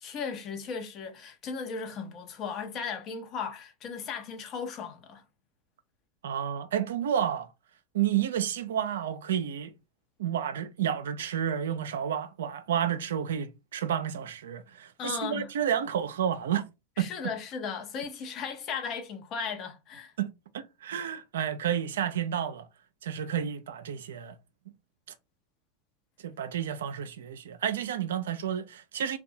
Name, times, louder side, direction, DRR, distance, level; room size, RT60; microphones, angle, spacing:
voice 1, 0.0-5.2 15.0-15.5 17.0-20.1, left 6 dB, 45° left, 0.7 m, -36 dB
voice 2, 6.2-7.5 7.9-9.7 10.2-16.7 17.0-17.1 20.2-20.3 20.5-22.7 23.0-24.4 26.2-29.2, right 9 dB, 80° right, 0.4 m, -30 dB
2.6 x 2.2 x 2.6 m
hypercardioid pair, 90°, 0 cm